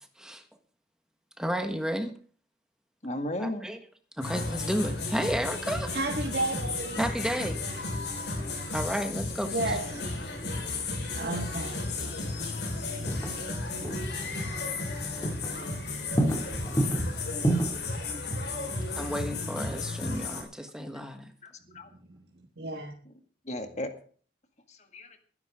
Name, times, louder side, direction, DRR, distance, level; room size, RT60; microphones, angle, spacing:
voice 1, 1.4-2.2 3.4-3.8 4.2-5.9 7.0-7.6 8.7-9.8 18.9-21.3, equal, 5° right, 1.5 m, -32 dB
voice 2, 3.0-3.7 21.4-21.9 23.1-23.2 23.5-23.9 24.7-25.2, left 1 dB, 40° left, 2.0 m, -35 dB
sound 1, 4.2-20.4, left 3 dB, 75° left, 4.7 m, -34 dB
voice 3, 5.9-7.0 9.5-12.1 22.6-22.9, right 2 dB, 65° right, 1.8 m, -33 dB
sound 2, 7.9-8.1 11.3-11.4 13.1-14.7 15.0-15.7 15.9-18.0, right 1 dB, 20° left, 2.4 m, -30 dB
20.5 x 11.0 x 3.7 m
head